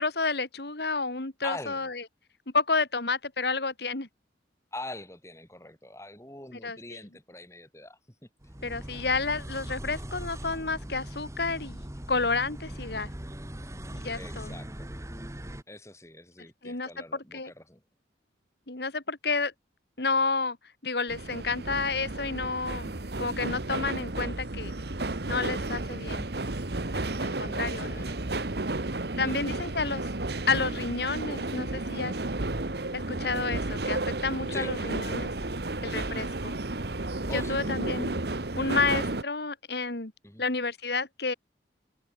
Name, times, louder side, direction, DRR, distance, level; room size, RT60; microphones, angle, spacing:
voice 1, 0.0-2.0 2.5-4.1 6.6-6.8 8.6-11.8 12.1-13.1 13.9-14.5 16.6-16.9 17.3-17.5 18.7-19.5 20.0-20.6 20.8-22.9 23.2-24.7 25.3-26.3 26.9-28.0 29.2-30.1 30.5-32.2 32.9-35.3 35.8-36.6 37.3-38.1 38.6-40.1 40.4-41.3, left 4 dB, 65° left, 2.0 m, -30 dB
voice 2, 1.4-1.9 4.7-8.0 14.1-14.9 15.7-17.8 27.7-28.2 29.2-29.7 34.5-34.7 37.3-37.9 40.2-40.4, left 1 dB, 15° left, 6.6 m, -43 dB
sound 1, 8.4-15.6, equal, 15° right, 1.8 m, -40 dB
sound 2, 21.1-39.2, right 2 dB, 65° right, 1.5 m, -32 dB
head